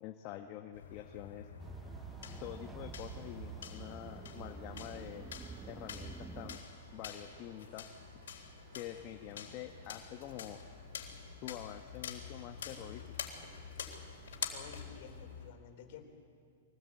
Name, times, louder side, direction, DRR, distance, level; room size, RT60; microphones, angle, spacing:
voice 1, 0.0-1.5 2.4-5.3 5.6-6.7 6.9-7.9 8.7-10.6 11.4-13.0, left 12 dB, 40° left, 4 dB, 1.1 m, -46 dB
sound 1, 0.7-15.5, left 7 dB, 80° left, 3.7 m, -47 dB
sound 2, 1.6-6.6, right 5 dB, 15° right, 0.6 m, -48 dB
sound 3, 4.3-15.5, right 3 dB, 60° right, 4.7 m, -59 dB
voice 2, 14.5-16.1, left 7 dB, 55° left, 5 dB, 3.9 m, -52 dB
23.5 x 19.0 x 8.5 m, 2.1 s
hypercardioid pair, 145°, 0 cm